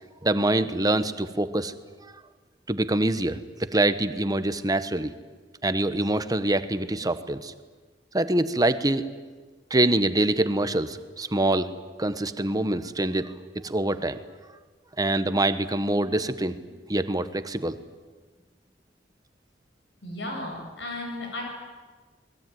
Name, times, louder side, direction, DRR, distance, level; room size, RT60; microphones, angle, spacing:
voice 1, 0.2-1.7 2.7-5.1 5.6-7.5 8.1-9.0 9.7-11.7 12.0-13.3 13.6-14.2 15.0-16.6 16.9-17.8, right 1 dB, 20° right, 11 dB, 1.3 m, -25 dB
voice 2, 20.0-21.4, left 1 dB, 90° left, 1 dB, 7.6 m, -34 dB
28.0 x 21.0 x 9.5 m, 1.4 s
head